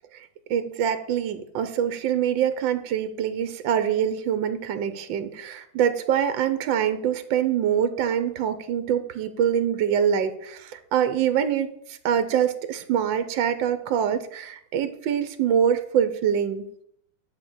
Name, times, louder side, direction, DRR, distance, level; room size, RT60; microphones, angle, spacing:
voice 1, 0.1-16.6, right 9 dB, 85° right, 11 dB, 1.5 m, -25 dB
10.5 x 4.5 x 7.9 m, 0.71 s
omnidirectional pair, 2.0 m